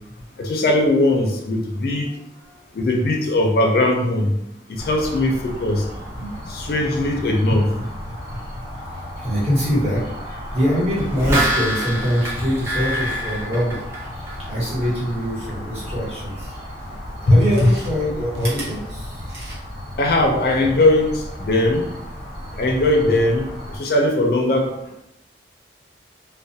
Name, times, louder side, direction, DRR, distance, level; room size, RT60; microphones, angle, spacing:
voice 1, 0.4-2.1 2.7-4.3 4.7-5.9 6.5-7.7 17.3-17.7 20.0-21.8 22.6-23.5 23.7-24.7, left 1 dB, 55° left, 0 dB, 0.4 m, -19 dB
voice 2, 2.1-2.6 6.1-6.4 8.9-13.8 14.2-16.5 17.3-19.3, equal, 35° right, -9 dB, 1.1 m, -24 dB
sound 1, 4.8-23.8, equal, 75° right, 1.2 m, -34 dB
sound 2, 11.0-14.5 14.8-14.9, right 1 dB, 15° right, 0.5 m, -25 dB
Chewing mastication, 17.4-19.9 20.3-20.4, right 2 dB, 60° right, 0.8 m, -37 dB
2.3 x 2.1 x 2.6 m, 0.83 s
head